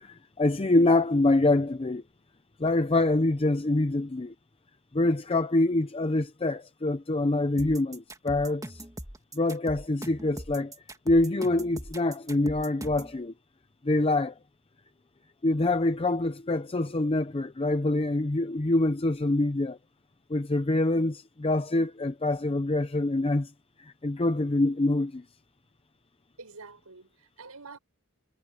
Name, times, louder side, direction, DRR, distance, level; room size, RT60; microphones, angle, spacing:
voice 1, 0.0-2.0 2.6-4.3 4.9-8.8 9.3-10.7 11.1-13.3 13.8-14.3 15.4-19.8 20.3-23.5 23.8-25.2, left 2 dB, 25° left, 0.6 m, -25 dB
sound 1, 7.6-13.1, right 1 dB, 15° right, 2.4 m, -41 dB
voice 2, 26.4-27.8, right 4 dB, 80° right, 5.9 m, -47 dB
head